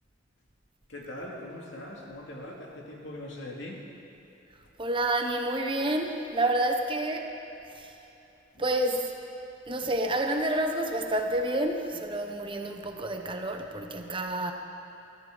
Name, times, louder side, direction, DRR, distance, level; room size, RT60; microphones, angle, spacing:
voice 1, 0.9-3.9 8.5-8.6, left 1 dB, 70° left, -2 dB, 2.5 m, -41 dB
voice 2, 4.8-7.3 7.7-8.0 8.6-9.1 9.7-14.5, right 1 dB, 25° right, 4 dB, 0.9 m, -29 dB
22.5 x 14.0 x 4.0 m, 3.0 s
head